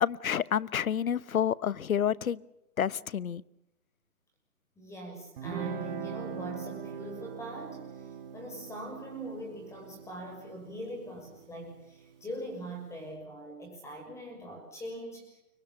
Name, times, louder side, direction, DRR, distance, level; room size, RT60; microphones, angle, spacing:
voice 1, 0.0-2.4 2.8-3.4, left 8 dB, 65° left, 20 dB, 1.1 m, -29 dB
voice 2, 4.8-15.4, right 1 dB, 5° left, 2 dB, 6.3 m, -42 dB
Guitar, 5.4-12.5, right 7 dB, 35° right, 5.3 m, -42 dB
29.5 x 24.0 x 5.6 m, 0.86 s
hypercardioid pair, 150°, 44 cm